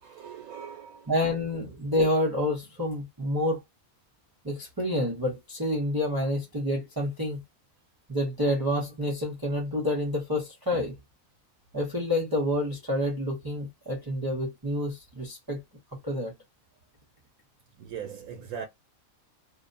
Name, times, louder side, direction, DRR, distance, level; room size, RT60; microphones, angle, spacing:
voice 1, 0.0-1.1 17.8-18.7, right 7 dB, 85° right, 1.1 m, -40 dB
voice 2, 1.1-3.6 4.4-7.4 8.1-11.0 11.7-15.6 16.0-16.3, left 1 dB, 25° right, 0.5 m, -28 dB
2.7 x 2.1 x 2.6 m
omnidirectional pair, 1.5 m